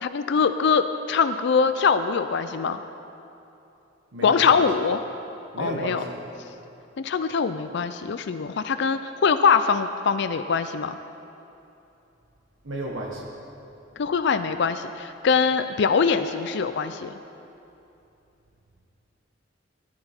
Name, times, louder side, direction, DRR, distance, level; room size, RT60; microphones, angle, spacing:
voice 1, 0.0-2.8 4.2-5.0 5.6-6.0 7.0-11.0 14.0-17.1, left 5 dB, 65° left, 10 dB, 0.4 m, -23 dB
voice 2, 4.1-4.6 5.5-6.1 12.6-13.2, right 1 dB, 80° right, -2 dB, 1.3 m, -32 dB
15.5 x 11.5 x 4.4 m, 2.9 s
head